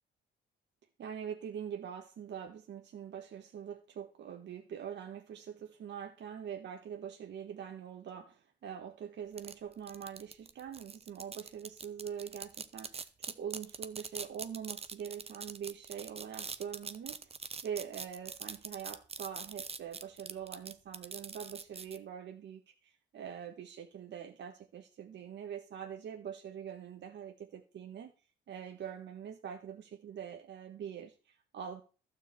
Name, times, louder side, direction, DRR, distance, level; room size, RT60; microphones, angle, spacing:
voice 1, 1.0-17.3 17.6-28.1 28.5-31.8, right 8 dB, 60° right, 4 dB, 1.5 m, -44 dB
sound 1, 9.4-22.0, right 5 dB, 30° right, 0.9 m, -43 dB
12.0 x 4.9 x 8.4 m, 0.36 s
cardioid pair, 90°, 20 cm